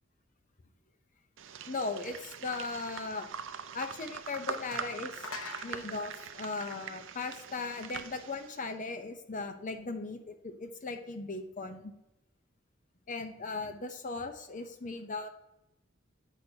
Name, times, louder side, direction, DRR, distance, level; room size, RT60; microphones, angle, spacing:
sound 1, 1.4-8.7, right 7 dB, 70° right, 0.4 m, -43 dB
voice 1, 1.7-3.3 3.7-11.9 13.1-15.3, left 3 dB, 40° left, 7 dB, 0.7 m, -38 dB
sound 2, 4.1-4.2 4.7-7.5, left 3 dB, 85° left, 0.9 m, -46 dB
8.1 x 6.1 x 2.8 m, 0.90 s
head